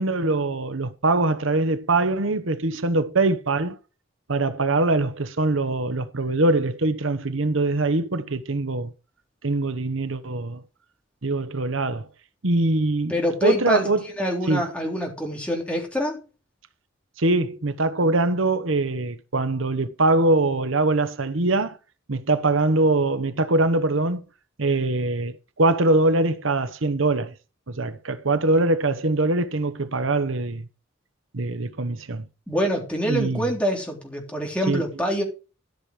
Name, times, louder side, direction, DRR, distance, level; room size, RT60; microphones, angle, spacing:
voice 1, 0.0-3.8 4.3-8.9 9.4-10.6 11.2-12.1 12.4-14.0 14.5-14.7 17.2-21.8 22.1-24.2 24.6-27.3 27.7-30.7 31.3-32.2 33.1-33.5 34.7-34.8, right 2 dB, 80° right, 1.0 m, -23 dB
voice 2, 13.1-13.9 14.2-16.2 32.5-35.2, equal, 5° left, 3.3 m, -25 dB
13.5 x 6.3 x 5.0 m
head